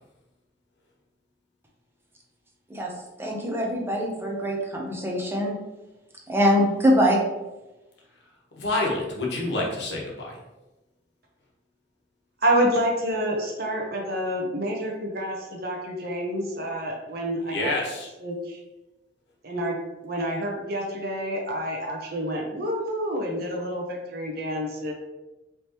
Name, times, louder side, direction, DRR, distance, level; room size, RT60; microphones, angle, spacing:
voice 1, 3.2-5.5 6.3-7.2, equal, 15° right, -1 dB, 0.7 m, -23 dB
voice 2, 8.5-10.4 17.5-18.1, left 2 dB, 70° left, -2 dB, 1.2 m, -28 dB
voice 3, 12.4-17.7 18.2-18.6 19.4-19.8 20.0-24.9, equal, 55° right, -1 dB, 1.0 m, -28 dB
4.9 x 3.3 x 3.0 m, 1.0 s
head